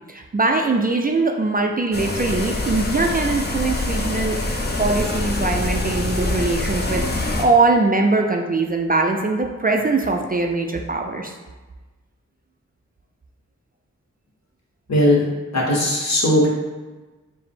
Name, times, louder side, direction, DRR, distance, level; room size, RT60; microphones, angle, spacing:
voice 1, 0.1-4.4 4.8-11.3, right 3 dB, 30° right, 2 dB, 0.4 m, -21 dB
sound 1, 1.9-7.4, left 2 dB, 35° left, 0.6 m, -25 dB
voice 2, 14.9-15.3 15.5-16.5, left 1 dB, 60° left, -3 dB, 1.1 m, -18 dB
4.7 x 2.0 x 3.6 m, 1.2 s
cardioid pair, 50°, 31 cm